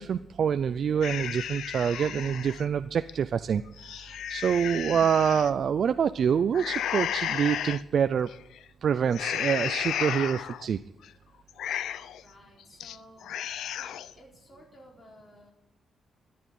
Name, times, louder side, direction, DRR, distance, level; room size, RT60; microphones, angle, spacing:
voice 1, 0.0-8.3 8.8-10.8, right 7 dB, 50° right, 11 dB, 0.4 m, -26 dB
sound 1, 1.0-2.6 3.1-3.2 3.7-5.5 6.5-7.8 8.3-8.6 9.1-10.7 11.0-11.1 11.5-12.2 12.6-13.0 13.2-14.1, left 10 dB, 85° left, 0.5 m, -33 dB
voice 2, 4.6-5.0 12.2-13.3 13.7-13.9 14.2-15.5, equal, 30° left, -1 dB, 4.1 m, -54 dB
13.5 x 10.5 x 9.4 m, 0.92 s
cardioid pair, 145°, 0 cm